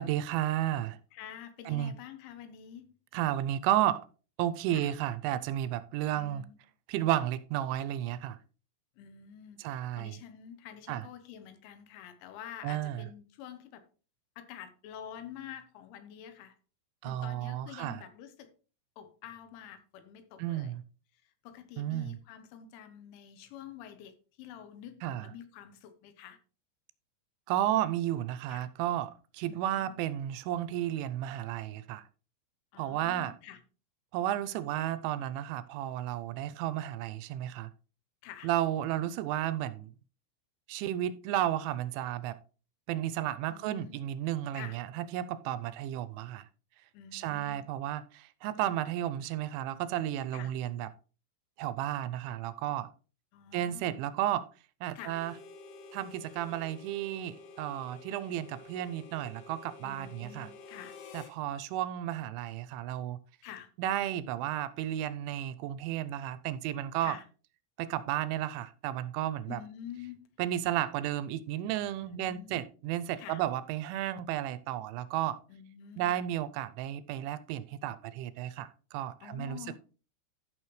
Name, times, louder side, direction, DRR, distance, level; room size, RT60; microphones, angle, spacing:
voice 1, 0.0-1.0 1.7-1.9 3.1-4.0 4.4-6.4 6.9-8.4 9.6-10.2 10.9-11.0 12.6-13.0 17.0-18.0 20.4-20.8 21.8-22.2 25.0-25.3 27.5-32.0 32.8-33.3 34.1-37.7 38.4-39.9 40.7-42.4 42.9-46.4 47.1-50.9 51.6-52.9 53.5-54.4 54.8-55.3 55.9-60.5 61.1-63.2 63.8-67.2 67.8-69.6 70.4-75.4 76.0-79.8, right 12 dB, 85° right, 2.8 m, -33 dB
voice 2, 1.1-3.0 4.7-4.9 6.1-6.6 9.0-13.8 14.4-16.5 17.0-18.5 19.0-20.8 21.4-26.4 28.5-28.7 29.4-29.9 32.7-33.6 38.2-38.5 43.5-44.0 44.5-44.8 46.9-47.6 50.3-50.5 53.3-53.9 55.0-55.2 59.8-61.0 63.4-63.7 67.0-67.2 69.5-70.3 72.0-72.6 73.2-73.4 75.5-76.2 79.2-79.8, left 9 dB, 85° left, 3.4 m, -48 dB
Harmonica, 55.0-61.4, left 4 dB, 70° left, 2.2 m, -50 dB
14.0 x 6.0 x 3.2 m
omnidirectional pair, 5.4 m